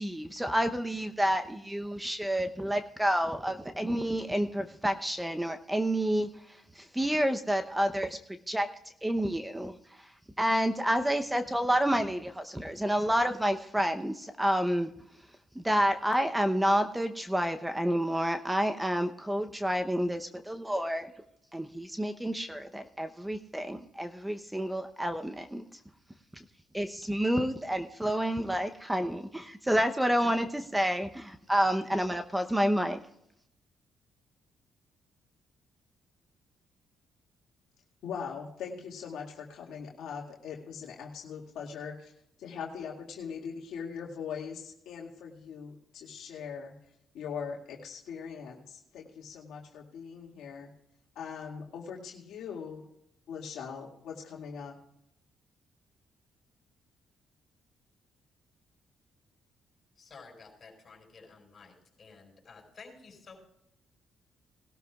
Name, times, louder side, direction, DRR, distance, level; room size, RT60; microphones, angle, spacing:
voice 1, 0.0-6.3 6.8-8.2 8.5-8.7 9.0-9.7 10.4-14.9 15.6-21.1 21.5-25.6 26.7-33.0, equal, 10° right, 7 dB, 0.8 m, -29 dB
voice 2, 38.0-42.1 42.4-46.8 47.1-50.7 51.2-52.9 53.3-54.7, left 6 dB, 80° left, -1 dB, 2.2 m, -41 dB
voice 3, 60.0-63.4, left 4 dB, 45° left, 1 dB, 5.7 m, -52 dB
20.0 x 12.5 x 2.4 m, 0.77 s
cardioid pair, 90°, 0 cm